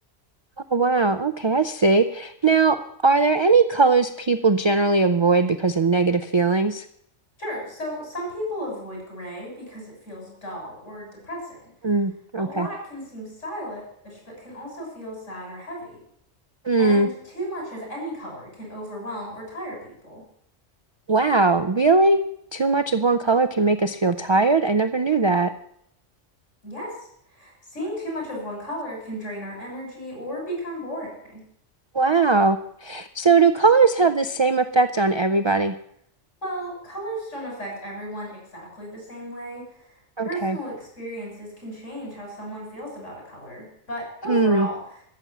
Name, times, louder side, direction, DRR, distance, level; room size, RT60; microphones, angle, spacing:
voice 1, 0.7-6.8 11.8-12.7 16.6-17.1 21.1-22.2 22.5-25.5 31.9-35.7 40.2-40.6 44.3-44.7, right 3 dB, 45° right, 10 dB, 0.3 m, -20 dB
voice 2, 7.4-11.6 12.4-16.0 16.8-20.2 26.6-27.0 27.3-31.4 36.4-44.8, equal, 90° left, -2 dB, 7.1 m, -35 dB
14.0 x 7.3 x 8.1 m, 0.70 s
omnidirectional pair, 1.2 m